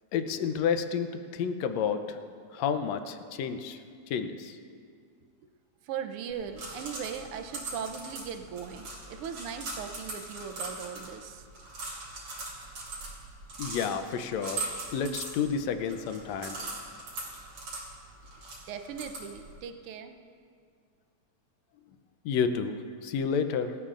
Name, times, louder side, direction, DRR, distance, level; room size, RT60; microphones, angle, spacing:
voice 1, 0.1-2.2 2.5-4.6 13.6-16.6 22.3-23.8, left 6 dB, 75° left, 8 dB, 1.8 m, -30 dB
voice 2, 5.8-11.5 18.7-20.1, right 7 dB, 85° right, 6 dB, 1.2 m, -39 dB
sound 1, 6.3-19.6, right 3 dB, 55° right, 4.5 m, -41 dB
25.5 x 14.5 x 2.5 m, 2.2 s
omnidirectional pair, 3.4 m